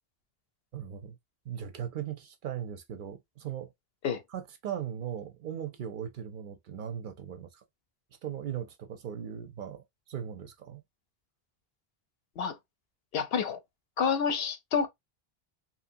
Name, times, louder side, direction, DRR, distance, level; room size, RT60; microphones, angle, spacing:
voice 1, 0.7-1.2 1.5-3.7 4.3-7.6 8.2-10.8, right 9 dB, 60° right, 0.6 m, -38 dB
voice 2, 13.1-13.6 14.0-14.9, left 6 dB, 75° left, 0.8 m, -28 dB
2.9 x 2.6 x 2.5 m
omnidirectional pair, 1.0 m